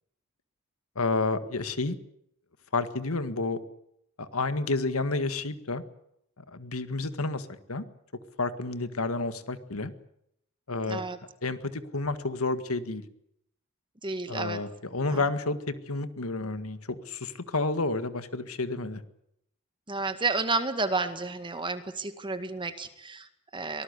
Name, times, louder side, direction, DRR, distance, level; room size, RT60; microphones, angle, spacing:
voice 1, 0.9-1.9 2.7-3.6 4.2-5.8 6.5-7.8 8.4-9.9 10.7-11.0 11.4-13.0 14.3-19.0, left 3 dB, 80° left, 11 dB, 1.8 m, -30 dB
voice 2, 10.9-11.2 14.0-14.6 15.1-15.2 19.9-23.8, right 3 dB, 20° right, 9 dB, 2.0 m, -31 dB
24.0 x 19.0 x 8.3 m, 0.75 s
head